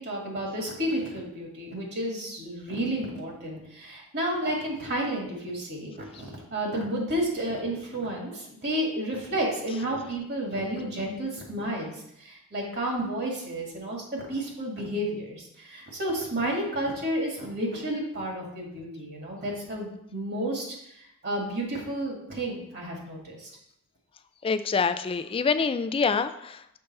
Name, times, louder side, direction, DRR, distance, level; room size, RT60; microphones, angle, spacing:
voice 1, 0.0-11.9 12.2-20.7 21.2-23.5, right 1 dB, 50° right, -1 dB, 1.8 m, -31 dB
voice 2, 24.4-26.8, left 5 dB, 25° left, 11 dB, 0.3 m, -26 dB
6.6 x 3.4 x 5.4 m, 0.77 s
head